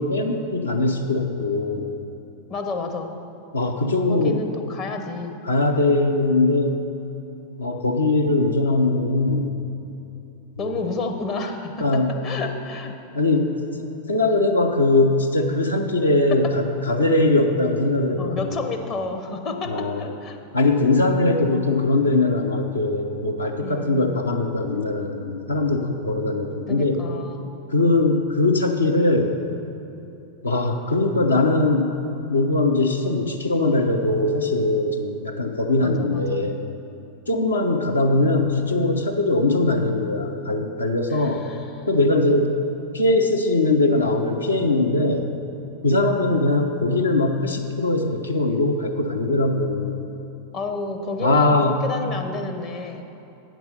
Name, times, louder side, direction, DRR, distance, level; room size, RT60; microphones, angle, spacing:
voice 1, 0.0-1.9 3.5-4.4 5.4-6.8 7.6-9.5 10.6-10.7 11.8-12.1 13.1-13.5 13.8-18.5 19.7-20.0 20.5-27.0 27.7-29.3 30.4-31.9 32.3-36.6 37.3-41.4 41.9-42.5 42.9-45.3 45.8-50.0 51.2-51.8, left 2 dB, 75° left, 2 dB, 0.6 m, -21 dB
voice 2, 2.5-3.2 4.1-5.3 10.6-13.0 18.2-20.4 23.6-24.2 26.7-27.5 35.8-36.5 41.1-41.9 50.5-53.0, left 3 dB, 35° left, 4 dB, 0.7 m, -31 dB
8.9 x 6.1 x 5.2 m, 2.9 s
figure-of-eight pair, 90°, 0 cm